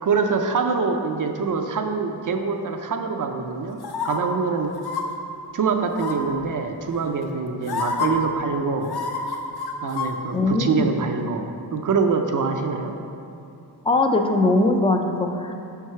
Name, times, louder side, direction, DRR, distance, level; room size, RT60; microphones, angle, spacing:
voice 1, 0.0-3.8 4.0-4.8 5.5-8.9 9.8-12.9, right 5 dB, 50° right, 5 dB, 0.5 m, -24 dB
sound 1, 3.8-4.2 4.8-5.0 6.0-6.4 7.2-7.3 7.7-8.1 8.8-10.1 10.4-10.5, left 5 dB, 70° left, 0.7 m, -28 dB
voice 2, 10.3-11.0 13.8-15.5, left 2 dB, 15° left, 4 dB, 0.4 m, -21 dB
5.4 x 4.6 x 5.6 m, 2.6 s
wide cardioid pair, 130°, 40 cm